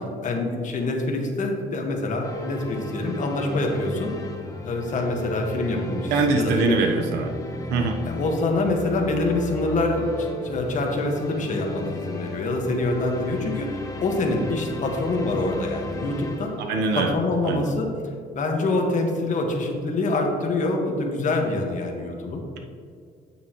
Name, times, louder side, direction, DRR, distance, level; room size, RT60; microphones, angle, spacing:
voice 1, 0.0-4.1 4.6-6.8 8.1-16.5 16.9-17.9 18.3-22.4, left 2 dB, 50° left, 1 dB, 1.6 m, -25 dB
sound 1, 2.2-17.0, left 1 dB, 20° left, 1.2 m, -35 dB
voice 2, 6.1-7.3 7.7-8.0 16.7-17.1 17.4-17.7, right 3 dB, 85° right, 4 dB, 1.1 m, -22 dB
8.9 x 8.8 x 3.1 m, 2.2 s
cardioid pair, 110°, 17 cm